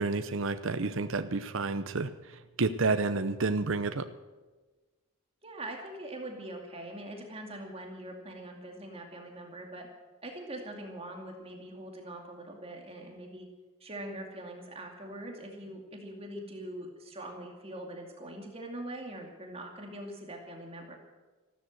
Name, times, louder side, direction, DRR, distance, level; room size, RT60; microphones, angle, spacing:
voice 1, 0.0-2.1 2.6-4.1, right 3 dB, 60° right, 10 dB, 0.8 m, -29 dB
voice 2, 5.4-9.9 10.2-13.5 13.8-20.9, right 1 dB, 25° right, 2 dB, 2.4 m, -42 dB
14.5 x 13.0 x 7.7 m, 1.2 s
head